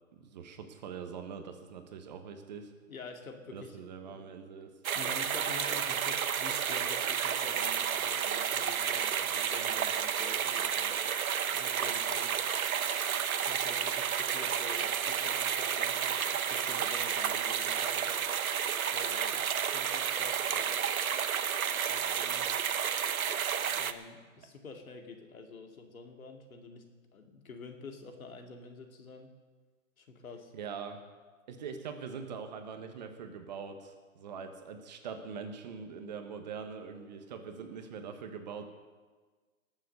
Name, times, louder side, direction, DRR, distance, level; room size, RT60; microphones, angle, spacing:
voice 1, 0.1-2.7 3.5-4.7 30.5-31.0 31.5-38.7, right 6 dB, 30° right, 6 dB, 1.2 m, -43 dB
voice 2, 2.9-4.4 4.9-11.1 11.5-12.4 13.4-18.3 18.9-19.5 19.7-20.7 21.9-22.6 23.7-26.9 27.1-29.3 30.0-30.5, left 4 dB, 75° left, 4 dB, 2.5 m, -48 dB
sound 1, 4.8-23.9, right 8 dB, 75° right, 1.0 m, -31 dB
19.5 x 7.4 x 6.7 m, 1.4 s
hypercardioid pair, 160°, 42 cm